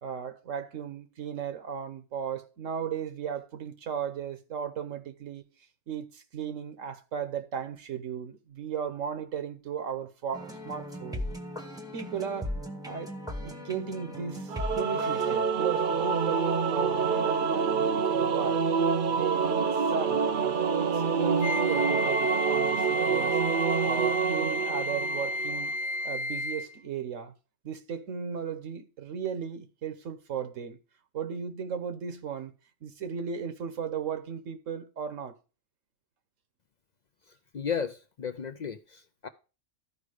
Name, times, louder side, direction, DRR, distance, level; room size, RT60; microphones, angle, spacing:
voice 1, 0.0-5.4 5.9-11.3 11.9-12.5 12.8-18.7 19.1-23.4 23.8-25.7 26.0-27.3 27.6-30.8 31.1-32.5 32.8-35.3, right 7 dB, 80° right, 1.4 m, -36 dB
sound 1, 10.3-15.4, left 1 dB, 5° right, 0.9 m, -38 dB
Singing / Musical instrument, 14.5-25.8, right 6 dB, 50° right, 0.7 m, -27 dB
Wind instrument woodwind instrument, 21.4-26.8, left 2 dB, 85° left, 1.4 m, -32 dB
voice 2, 37.5-39.3, left 6 dB, 60° left, 0.4 m, -34 dB
12.5 x 4.9 x 4.9 m
omnidirectional pair, 1.3 m